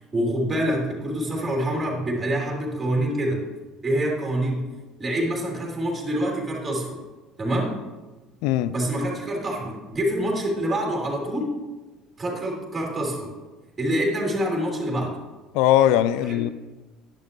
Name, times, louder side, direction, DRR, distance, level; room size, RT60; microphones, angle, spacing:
voice 1, 0.0-3.4 3.8-4.6 5.0-7.0 7.4-7.7 8.7-11.5 12.2-13.3 13.8-15.1 16.3-16.4, right 1 dB, 20° right, 3.3 m, -26 dB
voice 2, 8.4-8.7 15.5-16.5, left 12 dB, 60° left, 0.4 m, -20 dB
11.0 x 10.5 x 3.1 m
figure-of-eight pair, 60°, 0 cm